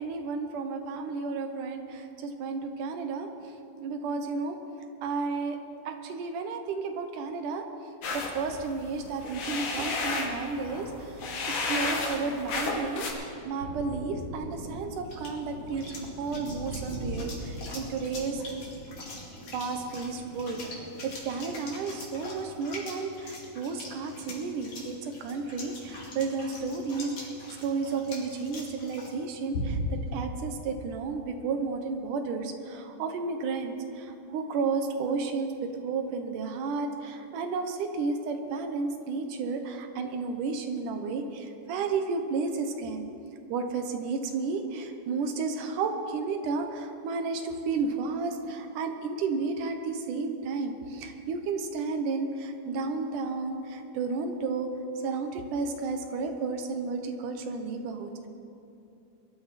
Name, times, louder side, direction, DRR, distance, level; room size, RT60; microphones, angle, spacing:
voice 1, 0.0-3.5 3.8-4.6 5.0-5.6 5.9-7.6 8.1-11.2 11.5-15.9 16.2-18.4 19.5-43.0 43.5-54.7 55.0-58.3, right 4 dB, 80° right, 6 dB, 2.6 m, -32 dB
sound 1, 8.0-13.1, left 3 dB, 85° left, 3.6 m, -32 dB
Thunder, 13.1-22.9 23.2-24.4, right 1 dB, 55° right, 4.0 m, -42 dB
sound 2, 14.5-30.0, left 1 dB, 50° left, 3.5 m, -43 dB
22.0 x 12.5 x 4.3 m, 2.7 s
omnidirectional pair, 3.6 m